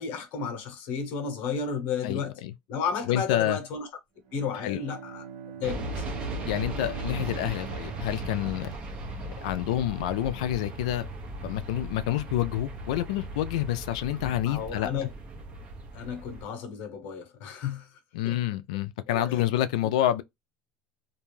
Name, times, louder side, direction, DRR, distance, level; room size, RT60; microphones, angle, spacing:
voice 1, 0.0-2.4 2.7-3.9 4.3-5.2 5.6-6.0 14.2-15.1 15.9-18.0 18.2-18.4 19.1-19.4, left 6 dB, 55° left, 1.0 m, -33 dB
voice 2, 2.0-2.5 3.1-3.6 4.6-4.8 6.5-8.7 9.2-11.1 11.4-14.9 18.1-20.2, left 12 dB, 90° left, 0.4 m, -28 dB
Bowed string instrument, 4.2-8.9, right 7 dB, 65° right, 1.0 m, -44 dB
sound 1, 5.6-16.4, right 1 dB, 35° right, 0.9 m, -37 dB
2.5 x 2.2 x 3.1 m
supercardioid pair, 135°, 3 cm